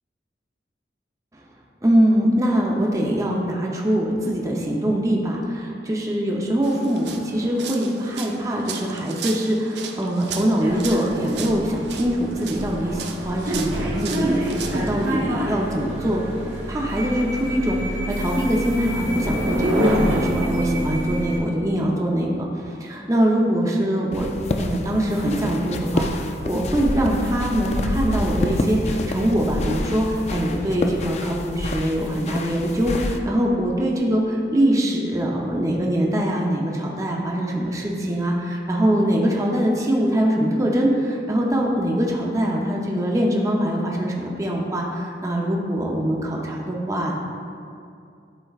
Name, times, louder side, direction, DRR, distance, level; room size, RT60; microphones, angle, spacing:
voice 1, 1.8-16.2 16.7-24.3 24.6-47.1, equal, 20° right, -2 dB, 0.6 m, -23 dB
sound 1, 6.6-15.1, right 6 dB, 65° right, 0.5 m, -36 dB
sound 2, 10.6-21.4, equal, 85° right, 1.1 m, -26 dB
sound 3, 24.1-33.2, left 2 dB, 35° left, 0.4 m, -28 dB
11.0 x 4.3 x 2.4 m, 2.5 s
head